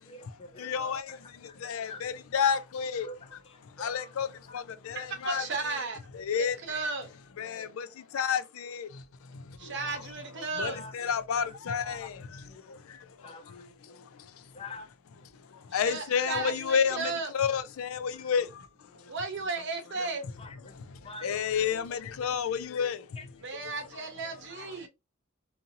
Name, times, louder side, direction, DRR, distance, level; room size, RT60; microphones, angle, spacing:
voice 1, 0.1-0.7 1.1-1.2 1.5-1.6 1.9-2.0 2.4-2.6 3.0-3.2 3.5-4.1 10.6-10.9 11.3-11.5 11.8-12.1 12.5-12.8 13.2-13.6 13.9-14.0 14.5-14.9 17.5-17.6 20.0-20.1 20.4-20.7 21.0-21.9 23.2-23.3 24.5-24.7, left 3 dB, 25° left, 0.5 m, -45 dB
voice 2, 0.6-1.0 1.6-3.1 3.8-4.3 4.5-5.5 6.3-6.6 7.4-7.9 8.1-8.9 10.6-12.1 15.7-18.4 21.2-23.0, left 7 dB, 75° left, 0.4 m, -30 dB
voice 3, 4.9-6.0 6.7-7.1 9.6-10.8 15.7-17.3 19.1-20.3 23.4-24.9, right 3 dB, 60° right, 0.8 m, -34 dB
2.6 x 2.6 x 2.6 m
head